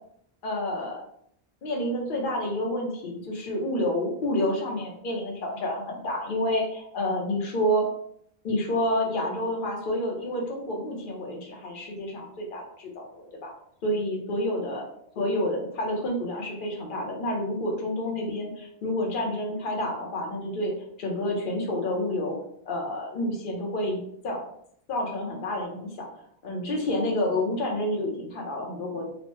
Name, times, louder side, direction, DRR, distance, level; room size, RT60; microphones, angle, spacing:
voice 1, 0.4-1.0 1.6-7.9 8.4-13.5 13.8-14.8 15.2-20.7 21.0-22.4 22.7-24.4 24.9-26.1 26.4-29.0, left 1 dB, 60° left, 0 dB, 0.9 m, -29 dB
3.0 x 2.1 x 3.0 m, 0.69 s
omnidirectional pair, 1.0 m